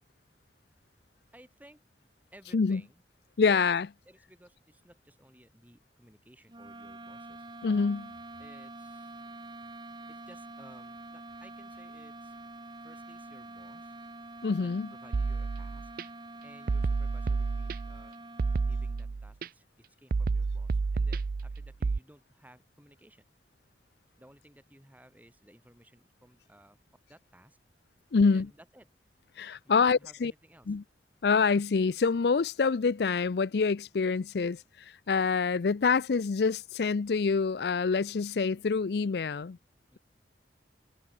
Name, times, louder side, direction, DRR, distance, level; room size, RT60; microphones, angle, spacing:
voice 1, 1.3-1.8 2.3-3.0 3.4-3.6 4.0-7.5 8.4-9.1 10.1-12.4 12.8-13.9 14.6-15.9 16.4-18.1 18.6-23.2 24.2-26.8 27.1-27.6 28.2-28.9 29.6-30.8 39.9-40.0, right 1 dB, 10° right, 2.6 m, -58 dB
voice 2, 3.4-3.9 7.6-8.1 14.4-14.9 28.1-28.5 29.4-30.3 30.7-30.8 31.2-39.6, left 5 dB, 65° left, 0.5 m, -26 dB
sound 1, 6.5-19.2, right 2 dB, 25° right, 2.3 m, -46 dB
sound 2, 15.1-16.0 16.7-18.0 18.4-19.5 20.1-22.0, right 4 dB, 50° right, 0.4 m, -30 dB
head